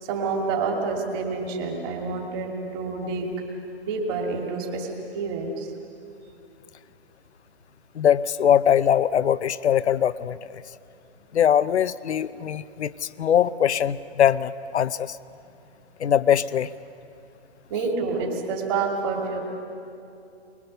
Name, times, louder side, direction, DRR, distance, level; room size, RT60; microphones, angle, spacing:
voice 1, 0.0-3.3 3.8-5.7 17.7-19.4, right 4 dB, 20° right, 1 dB, 2.3 m, -28 dB
voice 2, 7.9-10.6 11.3-15.2 16.0-16.7, left 9 dB, 75° left, 16 dB, 0.8 m, -22 dB
23.5 x 21.0 x 6.8 m, 2.7 s
hypercardioid pair, 170°, 34 cm